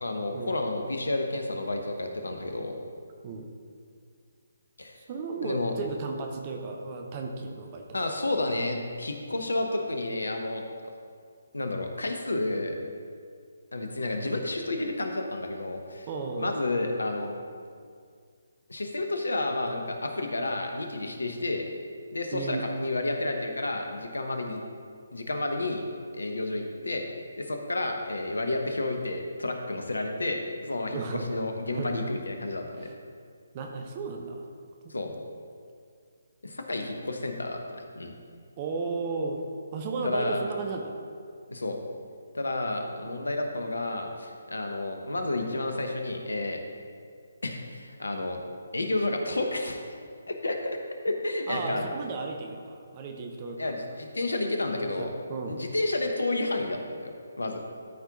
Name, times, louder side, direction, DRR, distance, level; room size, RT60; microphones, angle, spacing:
voice 1, 0.0-2.7 4.8-5.0 5.4-5.7 7.9-10.6 11.5-12.7 13.7-16.1 16.4-17.3 18.7-21.7 22.1-24.6 25.1-25.9 26.1-27.0 27.4-32.9 34.9-35.1 36.4-38.1 40.0-40.4 41.5-41.8 42.3-46.6 47.4-48.4 48.7-50.0 50.3-50.8 51.0-51.8 53.6-55.1 55.5-57.6, left 2 dB, 70° left, 4 dB, 1.0 m, -31 dB
voice 2, 5.0-7.9 16.1-16.6 22.3-22.6 30.9-31.3 31.7-32.1 32.8-32.9 33.5-34.5 34.8-34.9 38.6-39.4 39.7-41.0 43.0-43.2 51.5-53.8 54.8-55.6, right 4 dB, 30° right, 2 dB, 0.7 m, -34 dB
13.0 x 4.6 x 3.9 m, 2.2 s
figure-of-eight pair, 140°, 0 cm